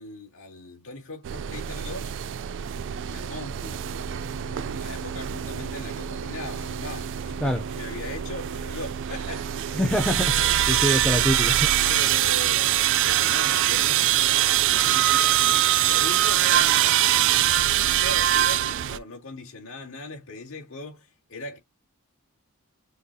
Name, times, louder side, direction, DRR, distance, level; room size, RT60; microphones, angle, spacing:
voice 1, 0.0-2.1 3.0-9.8 10.2-10.6 11.9-21.6, left 2 dB, 60° left, 2.2 m, -39 dB
sound 1, 1.2-19.0, right 12 dB, 55° right, 0.3 m, -23 dB
voice 2, 9.7-11.7, equal, 5° left, 0.5 m, -25 dB
6.3 x 2.3 x 2.7 m
head